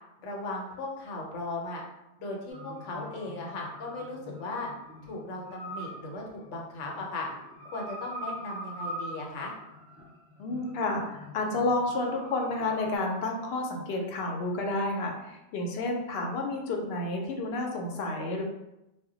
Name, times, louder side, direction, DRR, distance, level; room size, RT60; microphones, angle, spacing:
voice 1, 0.2-1.8 2.2-4.7 5.0-7.3 7.7-9.5, left 2 dB, 85° left, -1 dB, 1.0 m, -37 dB
sound 1, 2.5-13.0, equal, 5° right, 0.7 m, -43 dB
voice 2, 10.4-18.4, left 2 dB, 65° left, 2 dB, 0.7 m, -30 dB
2.1 x 2.1 x 3.7 m, 0.91 s
omnidirectional pair, 1.2 m